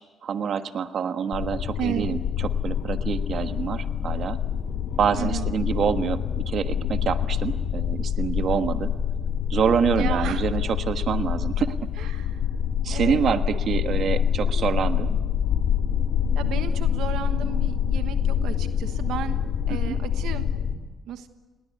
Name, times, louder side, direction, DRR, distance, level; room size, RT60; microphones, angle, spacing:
voice 1, 0.2-2.2 2.6-4.4 5.0-8.9 9.5-12.1 12.8-15.2 19.9-20.0, right 7 dB, 60° right, 9 dB, 1.4 m, -26 dB
sound 1, 1.3-20.8, left 8 dB, 85° left, 2.2 m, -26 dB
voice 2, 5.2-5.5 9.9-10.4 12.0-12.4 12.9-13.4 14.4-14.7 16.3-19.4 19.7-20.5 21.1-21.3, right 10 dB, 85° right, 9 dB, 1.2 m, -33 dB
30.0 x 20.0 x 8.3 m, 1.3 s
cardioid pair, 90°, 0 cm